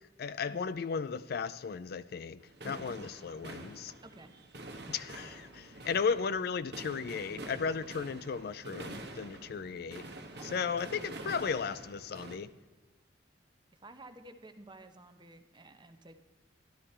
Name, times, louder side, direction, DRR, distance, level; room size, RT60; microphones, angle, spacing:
voice 1, 0.2-3.9 4.9-10.1 10.5-12.5, left 5 dB, 55° left, 0.4 m, -35 dB
sound 1, 2.4-12.4, right 1 dB, 60° right, 1.3 m, -47 dB
voice 2, 2.6-3.0 4.0-4.3 10.4-10.7 13.7-16.2, right 2 dB, 25° right, 0.9 m, -52 dB
12.0 x 12.0 x 4.3 m
head